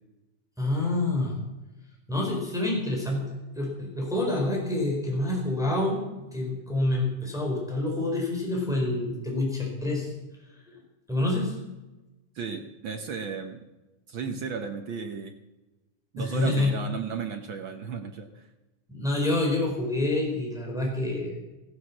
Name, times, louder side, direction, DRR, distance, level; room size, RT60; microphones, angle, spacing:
voice 1, 0.6-1.4 2.1-10.1 11.1-11.6 16.2-16.7 18.9-21.3, left 2 dB, ahead, -1 dB, 4.3 m, -27 dB
voice 2, 12.3-13.6 14.1-15.4 16.1-18.5, right 5 dB, 70° right, 5 dB, 1.2 m, -34 dB
16.0 x 11.0 x 7.2 m, 1.1 s
omnidirectional pair, 3.6 m